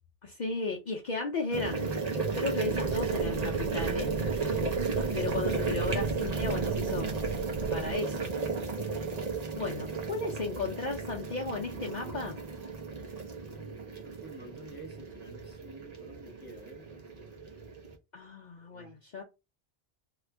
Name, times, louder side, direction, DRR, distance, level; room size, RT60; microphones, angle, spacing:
voice 1, 0.2-1.9 2.3-4.1 5.1-7.2 7.7-8.3 9.6-12.4 18.1-19.2, left 4 dB, 50° left, 0.6 m, -35 dB
sound 1, 1.5-17.9, right 4 dB, 40° right, 0.7 m, -34 dB
Fire, 2.7-8.0, right 4 dB, 60° right, 0.3 m, -39 dB
sound 2, 10.9-13.9, right 2 dB, 80° right, 1.2 m, -51 dB
voice 2, 13.5-17.1 18.6-19.0, right 1 dB, 10° right, 0.9 m, -50 dB
3.0 x 2.5 x 3.3 m
omnidirectional pair, 1.1 m